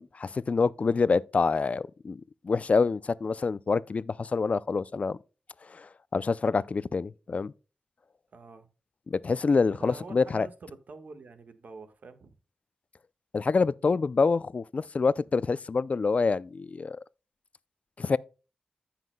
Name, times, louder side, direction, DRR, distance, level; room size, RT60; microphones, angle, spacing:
voice 1, 0.0-5.2 5.7-7.5 9.1-10.5 13.3-17.0 18.0-18.2, left 4 dB, 50° left, 0.4 m, -26 dB
voice 2, 8.3-8.7 9.8-12.3, right 4 dB, 70° right, 1.5 m, -46 dB
14.5 x 5.8 x 2.2 m
cardioid pair, 50°, 3 cm